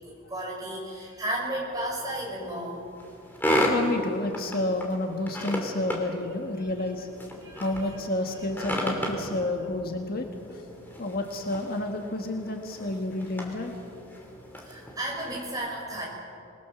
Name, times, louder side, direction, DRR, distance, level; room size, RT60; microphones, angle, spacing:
voice 1, 0.0-2.8 7.4-7.9 8.7-8.8 14.6-16.1, right 1 dB, 15° right, -3 dB, 6.4 m, -34 dB
sound 1, 1.7-15.5, equal, 10° left, 3.1 m, -34 dB
voice 2, 3.7-7.1 7.6-10.6 11.0-13.8, left 2 dB, 45° left, 3 dB, 1.6 m, -30 dB
26.5 x 20.5 x 7.0 m, 2.5 s
head